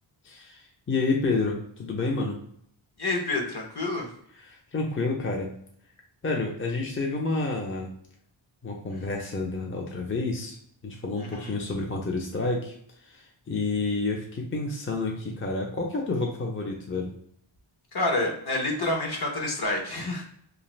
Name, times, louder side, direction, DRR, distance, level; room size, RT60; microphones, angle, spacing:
voice 1, 0.2-2.4 4.5-5.5 6.2-7.9 8.6-10.6 10.8-12.7 13.0-17.1, left 3 dB, 25° left, 0 dB, 0.5 m, -29 dB
voice 2, 3.0-4.1 11.2-11.5 17.9-20.2, left 2 dB, 50° left, 0 dB, 0.9 m, -28 dB
2.5 x 2.5 x 3.1 m, 0.66 s
wide cardioid pair, 75°, 49 cm